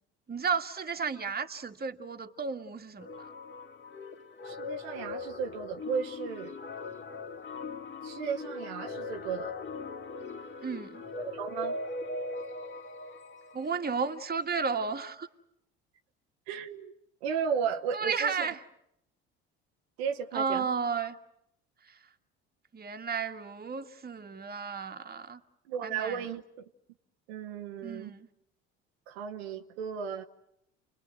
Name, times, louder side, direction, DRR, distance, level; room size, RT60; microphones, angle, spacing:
voice 1, 0.3-3.3 10.6-11.0 13.5-15.3 17.9-18.6 20.3-21.2 21.9-22.0 22.7-25.4 25.8-26.3 27.8-28.3, right 5 dB, 30° right, 1.9 m, -33 dB
sound 1, 3.0-14.2, left 3 dB, 40° left, 2.4 m, -40 dB
voice 2, 4.4-6.5 8.0-9.5 11.2-11.8 16.5-16.9 17.2-18.4 20.0-20.7 25.7-26.4 27.3-28.1 29.1-30.2, right 7 dB, 85° right, 1.2 m, -34 dB
29.5 x 21.5 x 9.1 m
hypercardioid pair, 65°, 31 cm